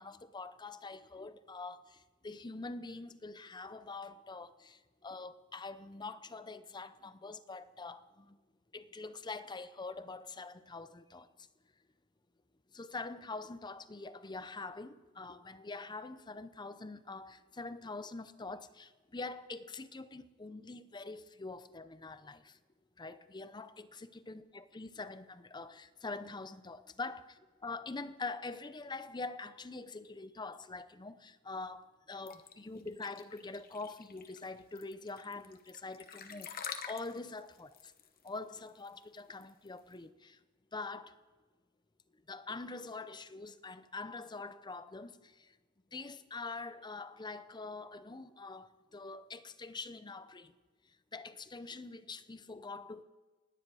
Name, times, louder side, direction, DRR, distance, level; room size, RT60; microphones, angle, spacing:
voice 1, 0.0-8.4 8.7-11.3 12.7-22.6 23.0-37.9 38.2-40.4 40.7-41.1 42.3-45.6 45.9-50.5 51.1-53.0, left 3 dB, 20° left, 0.6 m, -45 dB
sound 1, 32.3-39.9, left 7 dB, 40° left, 1.0 m, -47 dB
29.5 x 10.0 x 4.8 m
head